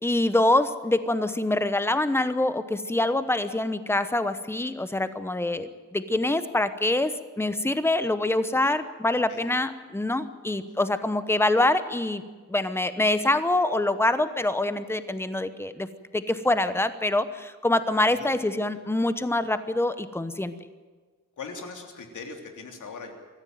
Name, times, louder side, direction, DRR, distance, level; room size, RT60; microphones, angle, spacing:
voice 1, 0.0-12.2 12.5-15.9 16.1-20.5, left 2 dB, 10° left, 11 dB, 0.9 m, -25 dB
voice 2, 21.4-23.1, left 4 dB, 85° left, 3 dB, 3.5 m, -40 dB
24.5 x 14.5 x 9.2 m, 1.4 s
wide cardioid pair, 175°, 30 cm